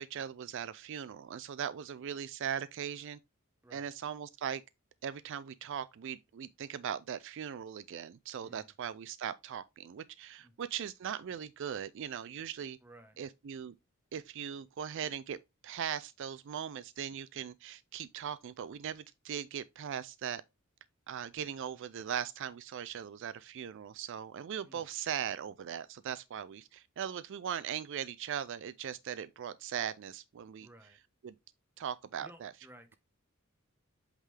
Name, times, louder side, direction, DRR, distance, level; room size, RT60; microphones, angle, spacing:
voice 1, 0.0-3.2 3.7-4.6 5.0-12.8 13.2-13.7 14.1-15.4 15.6-20.4 21.1-30.7 31.2-31.3 31.8-32.5, right 8 dB, 60° right, 0.4 m, -39 dB
voice 2, 8.4-8.7 10.4-10.5 12.8-13.2 24.6-24.9 30.6-31.0 32.2-33.0, right 1 dB, 10° right, 1.0 m, -56 dB
8.2 x 3.7 x 3.3 m
head